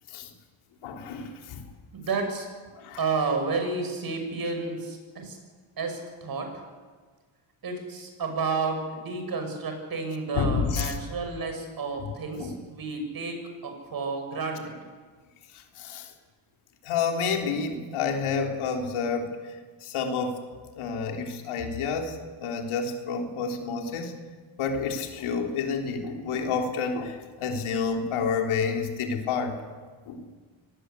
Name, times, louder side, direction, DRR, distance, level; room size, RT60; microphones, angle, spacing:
voice 1, 0.8-1.6 2.8-3.0 10.3-10.9 12.4-12.5 15.8-16.1 16.8-19.3 19.8-20.4 20.8-24.1 24.6-29.6 30.1-30.3, left 5 dB, 75° left, 3 dB, 3.8 m, -29 dB
voice 2, 1.9-2.5 3.0-5.4 5.8-6.5 7.6-14.8, right 4 dB, 45° right, 5 dB, 6.7 m, -31 dB
25.0 x 19.0 x 8.4 m, 1.5 s
cardioid pair, 110°, 50 cm